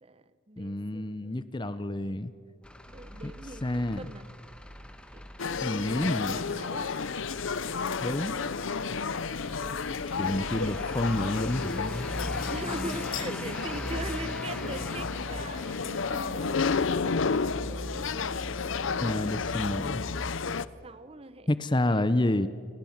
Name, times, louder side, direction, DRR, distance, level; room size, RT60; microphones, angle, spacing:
voice 1, 0.0-1.9 2.9-4.3 5.1-6.9 8.0-8.7 9.6-11.2 12.5-16.8 17.7-19.7 20.8-21.5 21.9-22.5, right 2 dB, 30° right, 13 dB, 0.9 m, -43 dB
voice 2, 0.6-2.3 3.2-3.3 3.6-4.0 5.6-6.5 8.0-8.4 10.2-12.1 19.0-20.0 21.5-22.5, left 1 dB, 25° left, 14 dB, 0.7 m, -29 dB
Truck / Idling, 2.6-20.3, equal, 5° left, 1.4 m, -41 dB
sound 1, 5.4-20.7, left 5 dB, 75° left, 0.7 m, -32 dB
29.5 x 21.0 x 7.3 m, 2.4 s
head